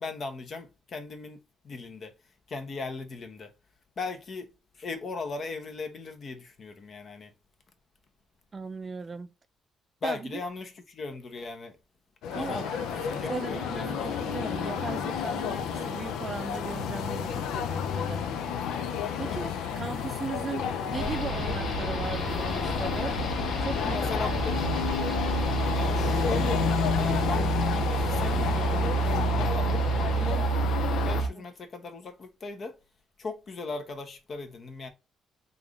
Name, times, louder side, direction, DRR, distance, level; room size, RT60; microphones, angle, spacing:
voice 1, 0.0-2.2 2.5-3.5 4.0-7.3 10.0-11.8 12.3-14.1 19.1-19.4 23.8-24.6 25.7-30.5 30.9-32.8 33.2-34.9, left 3 dB, 50° left, 0.9 m, -38 dB
voice 2, 8.5-9.3 10.0-10.4 12.3-12.8 13.3-18.2 19.2-23.2 23.6-24.1 24.5-24.7 30.2-30.6 31.3-31.4, right 4 dB, 30° right, 0.4 m, -38 dB
sound 1, 12.2-31.2, left 8 dB, 85° left, 0.4 m, -31 dB
sound 2, 12.3-30.7, right 9 dB, 80° right, 0.6 m, -43 dB
sound 3, 20.9-31.3, right 3 dB, 65° left, 1.4 m, -29 dB
3.5 x 2.6 x 3.5 m
cardioid pair, 90°, 0 cm